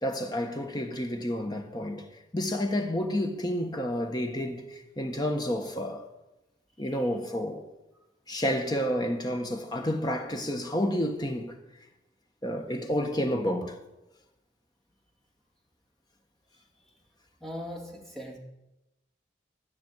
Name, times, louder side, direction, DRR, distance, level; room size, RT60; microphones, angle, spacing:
voice 1, 0.0-2.1 2.3-6.0 6.8-7.7 8.3-11.5 12.4-13.8, equal, 20° left, 1.4 m, -30 dB
voice 2, 17.4-18.4, equal, ahead, 2.3 m, -39 dB
13.5 x 6.2 x 9.8 m
head